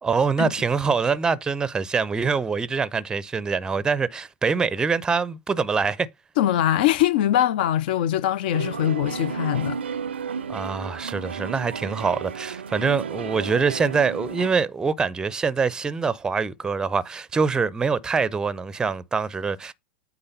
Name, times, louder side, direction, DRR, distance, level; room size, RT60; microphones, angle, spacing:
voice 1, 0.0-6.1 10.5-19.7, right 5 dB, 10° right, 0.5 m, -24 dB
voice 2, 6.4-9.8, left 12 dB, 50° left, 0.4 m, -22 dB
sound 1, 8.5-14.5, right 6 dB, 70° right, 0.5 m, -33 dB
8.7 x 4.0 x 5.3 m
figure-of-eight pair, 95°, 6 cm